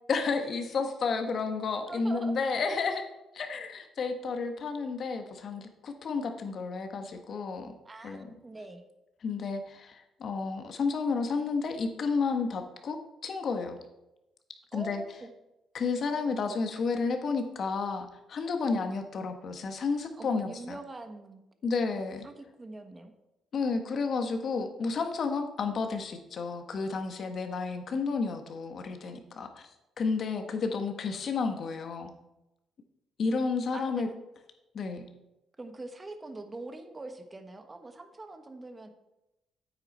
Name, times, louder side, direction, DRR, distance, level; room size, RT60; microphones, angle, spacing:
voice 1, 0.1-3.1 3.3-7.8 8.0-8.3 9.2-13.0 13.2-13.8 14.7-15.0 15.7-20.8 21.6-22.3 23.5-29.7 30.0-32.1 33.2-34.1 34.7-35.1, left 4 dB, 55° left, 6 dB, 1.4 m, -31 dB
voice 2, 1.9-2.4 7.8-8.8 14.7-15.3 20.2-21.4 22.2-23.1 33.7-34.0 35.6-38.9, right 2 dB, 25° right, 7 dB, 1.3 m, -43 dB
9.0 x 8.9 x 4.3 m, 0.93 s
cardioid pair, 90°, 0 cm